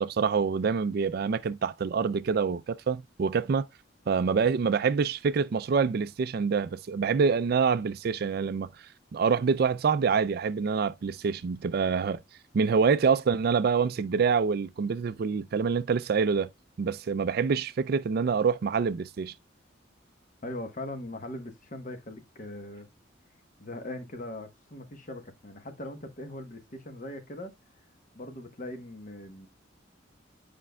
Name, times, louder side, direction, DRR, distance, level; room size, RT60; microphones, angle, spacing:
voice 1, 0.0-3.7 4.1-8.7 9.1-12.2 12.5-16.5 16.8-19.3, right 5 dB, 50° right, 0.3 m, -26 dB
voice 2, 20.4-22.9 23.6-27.5 28.1-29.5, left 1 dB, 40° left, 1.1 m, -40 dB
9.9 x 5.2 x 2.2 m
head